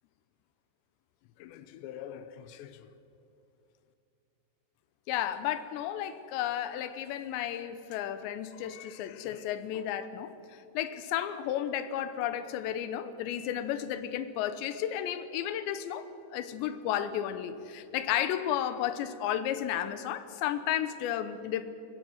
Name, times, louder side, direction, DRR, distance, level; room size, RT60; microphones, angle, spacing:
voice 1, 1.4-2.8 5.1-21.7, left 11 dB, 85° left, 12 dB, 3.1 m, -33 dB
22.5 x 17.0 x 7.9 m, 2.7 s
omnidirectional pair, 5.2 m